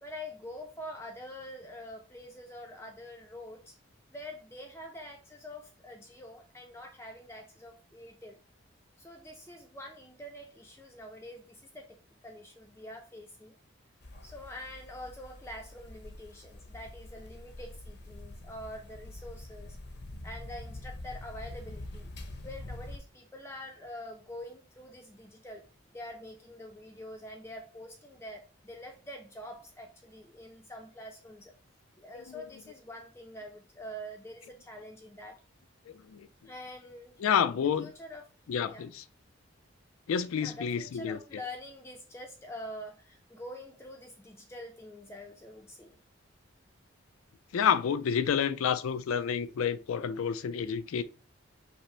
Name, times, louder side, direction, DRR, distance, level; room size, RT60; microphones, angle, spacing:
voice 1, 0.0-3.8 4.1-8.4 9.0-13.6 14.2-19.8 20.2-25.7 25.9-31.5 32.0-35.4 36.4-37.2 37.8-38.3 38.7-38.9 40.4-46.0, left 1 dB, 10° left, 0.4 m, -45 dB
sound 1, 14.0-23.0, left 1 dB, 55° left, 0.7 m, -45 dB
voice 2, 37.2-37.9 38.5-39.0 40.1-41.2 47.5-51.0, left 7 dB, 85° left, 0.4 m, -29 dB
5.5 x 2.0 x 4.3 m
head